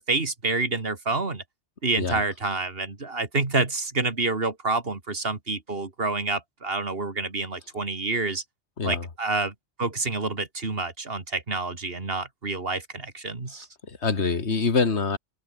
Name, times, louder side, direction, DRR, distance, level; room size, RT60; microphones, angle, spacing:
voice 1, 0.0-1.4 1.8-8.4 8.8-13.7, right 3 dB, 55° right, 2.7 m, -28 dB
voice 2, 13.9-15.2, left 4 dB, 75° left, 2.4 m, -25 dB
omnidirectional pair, 1.1 m